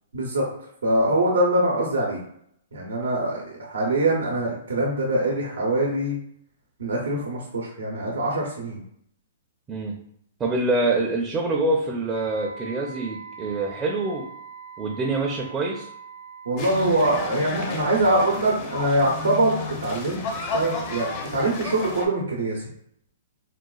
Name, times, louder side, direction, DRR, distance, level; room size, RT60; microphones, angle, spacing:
voice 1, 0.1-0.5 0.8-2.2 2.7-6.2 6.8-8.8 16.5-20.2 20.5-22.7, right 1 dB, 80° right, -2 dB, 0.7 m, -23 dB
voice 2, 10.4-14.3 14.8-15.9, right 2 dB, 20° right, -1 dB, 0.5 m, -25 dB
Wind instrument woodwind instrument, 12.1-16.9, right 4 dB, 85° left, 1.3 m, -42 dB
sound 1, 16.6-22.1, left 3 dB, 40° left, 0.6 m, -32 dB
3.9 x 2.2 x 2.3 m, 0.70 s
hypercardioid pair, 130°, 0 cm